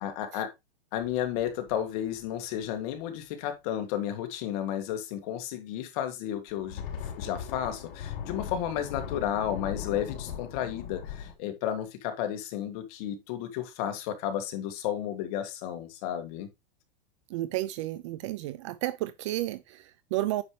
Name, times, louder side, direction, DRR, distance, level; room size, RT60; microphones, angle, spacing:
voice 1, 0.0-0.5 0.9-6.8 7.2-16.5, left 10 dB, 40° left, 2.0 m, -32 dB
sound 1, 0.9-2.7 6.5-11.3, left 8 dB, 70° left, 3.8 m, -39 dB
voice 2, 17.3-20.4, right 16 dB, 30° right, 0.4 m, -32 dB
9.5 x 6.6 x 3.1 m
supercardioid pair, 160°, 30 cm